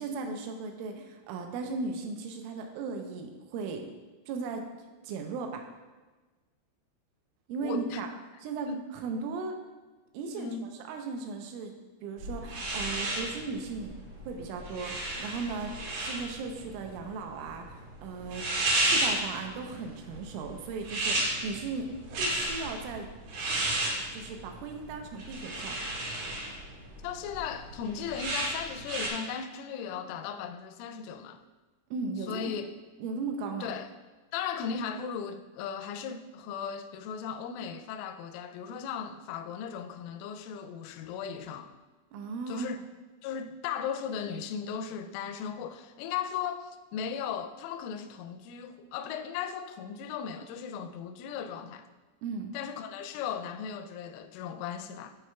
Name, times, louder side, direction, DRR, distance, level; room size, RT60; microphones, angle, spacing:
voice 1, 0.0-3.9 4.3-4.7 5.0-5.6 7.5-8.1 8.4-8.7 8.9-9.6 10.1-10.5 10.8-11.7 12.0-13.9 14.3-18.4 18.8-21.9 22.2-23.1 24.1-25.8 31.9-32.5 33.0-33.7 42.1-42.7 52.2-52.6, right 4 dB, 80° right, 3.0 m, -36 dB
voice 2, 7.6-8.0 8.7-8.9 10.3-10.7 27.0-31.4 32.3-32.7 33.6-33.9 34.3-41.7 42.5-42.8 43.2-51.9 52.5-55.2, left 7 dB, 85° left, 3.0 m, -37 dB
sound 1, 12.2-29.1, right 1 dB, 65° right, 2.8 m, -33 dB
14.0 x 4.6 x 2.3 m
omnidirectional pair, 5.8 m